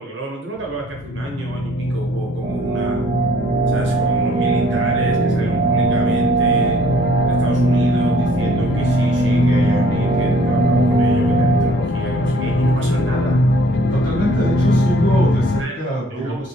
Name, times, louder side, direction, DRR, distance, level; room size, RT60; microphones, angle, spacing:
voice 1, 0.0-3.0 3.7-6.8 7.2-13.4 15.6-15.8 16.1-16.4, right 2 dB, 85° right, 0 dB, 0.9 m, -32 dB
sound 1, 0.6-15.6, left 1 dB, 60° left, 0.3 m, -20 dB
sound 2, 2.4-11.7, right 3 dB, 45° right, 0.3 m, -20 dB
voice 2, 13.9-16.5, equal, 85° left, -7 dB, 1.4 m, -24 dB
3.2 x 2.8 x 2.8 m, 0.74 s
head